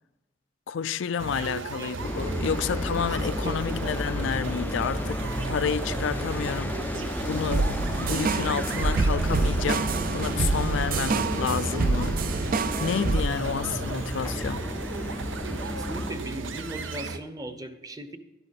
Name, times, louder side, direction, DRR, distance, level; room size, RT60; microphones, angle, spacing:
voice 1, 0.7-5.2 5.5-12.2 12.8-14.6, left 7 dB, 75° left, 0.4 m, -30 dB
sound 1, 1.2-17.2, right 3 dB, 85° right, 0.8 m, -35 dB
sound 2, 2.0-16.2, left 1 dB, 10° left, 0.4 m, -33 dB
voice 2, 3.4-4.4 15.6-18.2, right 1 dB, 20° right, 0.8 m, -39 dB
sound 3, 7.5-13.2, right 3 dB, 45° right, 0.5 m, -26 dB
12.0 x 11.5 x 4.1 m
head